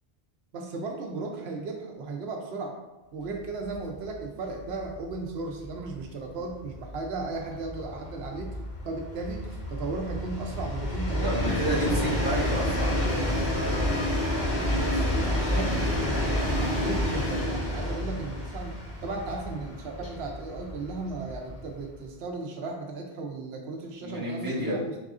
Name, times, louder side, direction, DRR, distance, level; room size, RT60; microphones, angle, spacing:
voice 1, 0.5-2.8 3.1-8.6 8.8-11.7 14.7-25.0, right 3 dB, 85° right, 2 dB, 0.9 m, -36 dB
Train, 3.7-3.8 4.1-4.2 4.5-21.9, left 1 dB, 50° left, 1.3 m, -29 dB
voice 2, 11.2-12.9 24.0-24.8, right 1 dB, 20° right, -9 dB, 1.3 m, -30 dB
4.7 x 3.6 x 2.5 m, 1.0 s
omnidirectional pair, 1.0 m